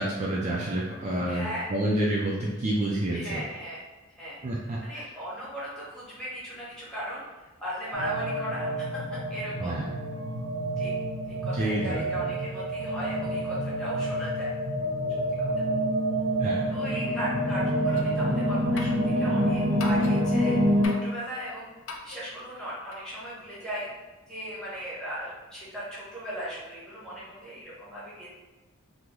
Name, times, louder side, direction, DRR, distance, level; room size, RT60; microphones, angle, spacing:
voice 1, 0.0-3.4 4.4-5.0 9.6-9.9 11.5-12.3 16.4-16.7, right 1 dB, 35° right, -4 dB, 0.4 m, -29 dB
voice 2, 1.3-1.7 3.1-3.8 4.1-4.4 4.8-7.2 7.6-9.0 9.3-9.8 10.8-10.9 11.3-14.5 15.4-15.6 16.7-21.7 22.0-23.9 24.3-28.3, equal, 5° left, -9 dB, 0.9 m, -37 dB
sound 1, 7.9-20.9, equal, 80° right, 0.6 m, -27 dB
sound 2, 18.0-18.2 18.8-19.1 19.8-20.3 20.8-21.1 21.9-22.2 22.9-23.0, left 4 dB, 60° left, 0.4 m, -40 dB
3.0 x 2.0 x 3.7 m, 1.1 s
head